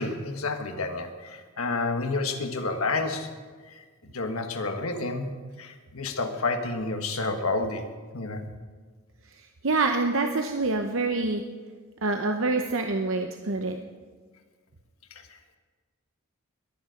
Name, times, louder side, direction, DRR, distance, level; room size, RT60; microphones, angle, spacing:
voice 1, 0.0-3.3 3.7-5.3 5.6-7.9 8.1-8.5 15.1-15.4, left 3 dB, 80° left, 5 dB, 1.5 m, -30 dB
voice 2, 9.4-11.4 12.0-13.8, right 3 dB, 65° right, 5 dB, 0.8 m, -26 dB
22.5 x 9.5 x 5.1 m, 1.5 s
head